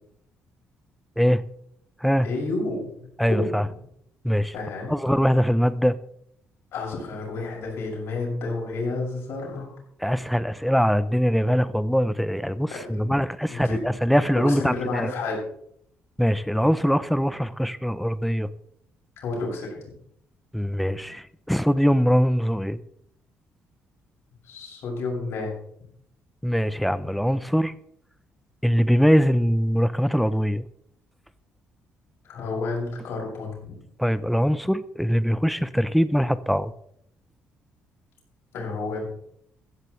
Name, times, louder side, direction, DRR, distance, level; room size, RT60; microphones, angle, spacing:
voice 1, 2.2-3.5 4.5-4.9 6.7-9.7 12.7-12.8 13.0-13.1 13.5-13.9 14.3-15.4 19.2-19.8 24.4-25.5 32.2-33.7 38.5-39.0, left 3 dB, 65° left, 6.3 m, -30 dB
voice 2, 3.2-3.7 4.2-4.5 4.9-6.0 10.0-15.1 16.2-18.5 20.5-22.8 26.4-27.7 28.6-30.7 34.0-36.7, equal, ahead, 0.5 m, -22 dB
15.0 x 14.5 x 3.2 m
cardioid pair, 165°, 5 cm